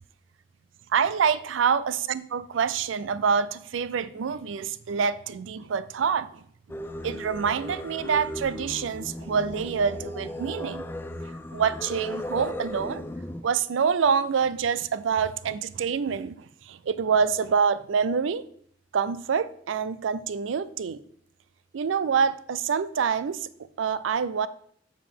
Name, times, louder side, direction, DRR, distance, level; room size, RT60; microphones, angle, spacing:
voice 1, 0.9-6.4 6.7-10.9 11.2-13.0 13.4-18.4 18.9-21.0 21.7-23.5 23.8-24.5, right 6 dB, 80° right, 0.4 m, -26 dB
Singing, 6.7-13.4, left 1 dB, 10° left, 0.3 m, -36 dB
7.5 x 6.9 x 3.6 m
head